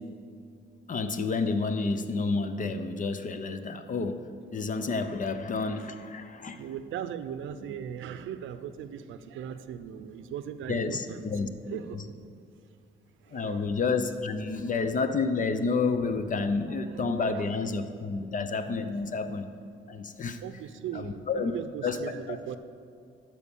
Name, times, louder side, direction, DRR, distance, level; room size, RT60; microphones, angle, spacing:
voice 1, 0.9-4.2 4.5-6.6 10.7-11.5 11.9-12.0 13.3-19.5 19.9-20.4 20.9-21.5 21.8-22.0 22.3-22.6, left 4 dB, 40° left, 9 dB, 0.7 m, -30 dB
voice 2, 6.6-11.3 11.7-12.1 13.2-13.7 14.6-14.8 16.9-17.5 20.4-22.6, right 9 dB, 75° right, 11 dB, 0.6 m, -38 dB
12.0 x 4.7 x 7.0 m, 2.3 s
cardioid pair, 90°, 20 cm